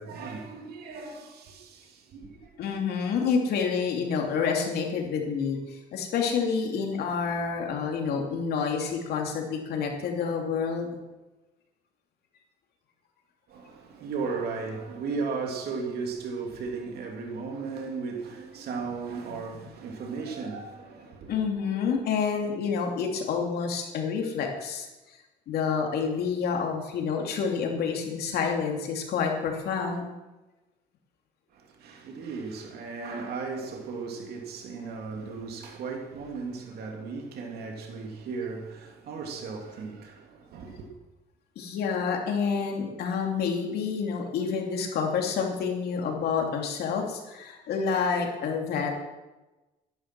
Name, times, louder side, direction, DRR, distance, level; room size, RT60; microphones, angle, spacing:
voice 1, 0.0-2.5 13.5-21.4 31.5-40.9, right 4 dB, 70° right, 2.9 m, -36 dB
voice 2, 2.6-10.9 21.3-24.9 25.5-30.0 41.6-49.0, left 6 dB, 70° left, 2.9 m, -28 dB
13.0 x 11.0 x 6.2 m
cardioid pair, 110°, 17 cm